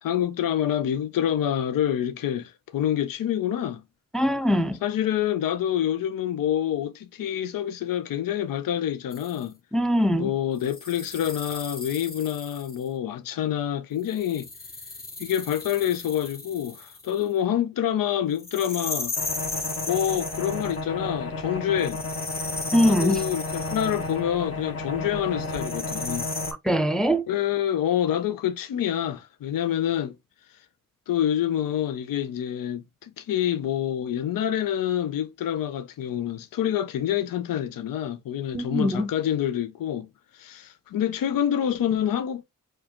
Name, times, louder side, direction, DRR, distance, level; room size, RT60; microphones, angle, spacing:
voice 1, 0.0-3.8 4.8-9.5 10.2-14.5 15.2-19.1 19.9-22.0 22.9-26.3 27.3-30.2 31.1-40.1 40.3-42.4, left 10 dB, 80° left, 0.5 m, -27 dB
voice 2, 4.1-4.8 9.7-10.3 22.7-23.2 26.7-27.2 38.5-39.1, equal, ahead, 0.4 m, -22 dB
sound 1, 9.1-9.4 10.6-12.9 14.0-17.2 18.4-20.8 21.8-24.1 25.4-26.5, left 3 dB, 25° left, 0.8 m, -36 dB
sound 2, 19.1-26.5, left 2 dB, 45° left, 1.2 m, -33 dB
4.6 x 2.3 x 2.9 m
wide cardioid pair, 95°, 33 cm